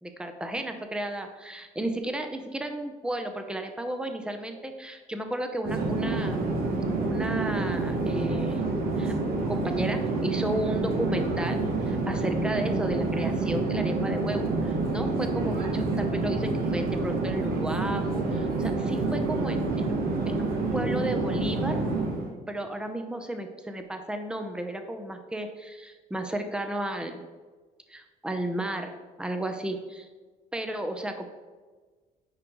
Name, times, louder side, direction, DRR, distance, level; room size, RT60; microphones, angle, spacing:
voice 1, 0.0-6.5 7.0-8.6 9.0-9.1 9.5-11.6 11.9-21.8 22.5-27.2 27.9-30.1 30.5-31.3, right 1 dB, 5° right, 6 dB, 0.7 m, -33 dB
Conversation / Chatter / Fixed-wing aircraft airplane, 5.6-22.3, right 3 dB, 60° right, 1.2 m, -28 dB
9.5 x 5.1 x 3.1 m, 1.4 s
cardioid pair, 110°, 17 cm